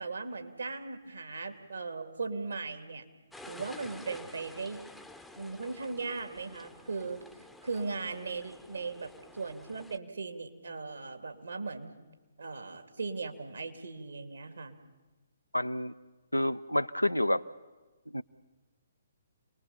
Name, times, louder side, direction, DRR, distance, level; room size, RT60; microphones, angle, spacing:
voice 1, 0.0-3.0 3.4-4.8 5.4-7.2 7.6-11.9 12.4-14.8, right 4 dB, 65° right, 7 dB, 2.6 m, -38 dB
sound 1, 3.3-10.0, left 2 dB, ahead, 0.9 m, -51 dB
voice 2, 15.5-15.9 16.3-17.4 18.1-18.2, left 1 dB, 90° left, 12 dB, 0.8 m, -29 dB
28.5 x 20.5 x 7.3 m, 1.2 s
figure-of-eight pair, 130°, 0 cm